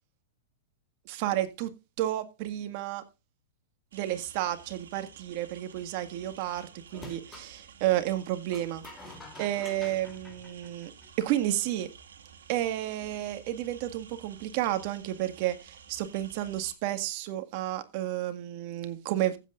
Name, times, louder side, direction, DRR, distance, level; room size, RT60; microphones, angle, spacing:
voice 1, 1.1-1.7 2.0-3.0 3.9-8.8 9.4-10.9 11.2-11.9 12.5-19.4, right 13 dB, 50° right, 1.9 m, -31 dB
sound 1, 3.9-16.7, right 7 dB, 85° right, 2.0 m, -52 dB
sound 2, 6.9-7.5 8.5-11.2, left 3 dB, 15° left, 3.2 m, -48 dB
15.0 x 8.4 x 2.5 m
hypercardioid pair, 125°, 0 cm